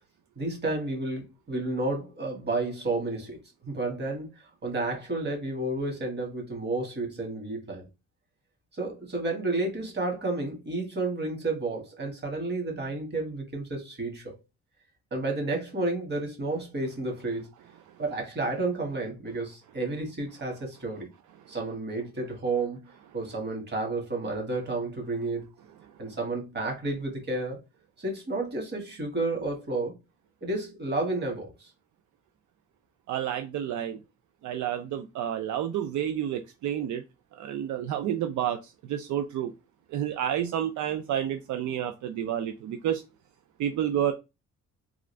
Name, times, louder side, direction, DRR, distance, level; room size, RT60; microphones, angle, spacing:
voice 1, 0.4-3.4 3.6-4.3 4.6-7.9 8.7-14.4 15.1-17.5 18.0-21.1 21.5-25.5 26.0-27.6 28.0-29.9 30.4-31.7, right 2 dB, 35° right, 1.8 m, -31 dB
voice 2, 33.1-34.0 34.4-37.0 37.4-39.5 39.9-43.0 43.6-44.1, right 10 dB, 75° right, 0.5 m, -30 dB
3.6 x 2.5 x 3.2 m
cardioid pair, 90°, 30 cm